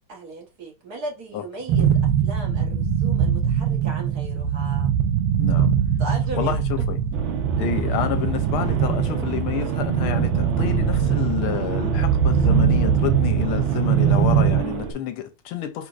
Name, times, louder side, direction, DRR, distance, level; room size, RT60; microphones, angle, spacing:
voice 1, 0.1-1.9 2.2-4.9 6.0-6.6, right 2 dB, 50° right, 1.5 m, -36 dB
sound 1, 1.7-14.6, right 8 dB, 85° right, 1.6 m, -21 dB
voice 2, 5.4-5.7 6.3-7.0 7.5-15.9, left 10 dB, 90° left, 1.6 m, -29 dB
sound 2, 7.1-14.9, right 6 dB, 70° right, 1.6 m, -31 dB
5.0 x 4.1 x 2.4 m
omnidirectional pair, 2.3 m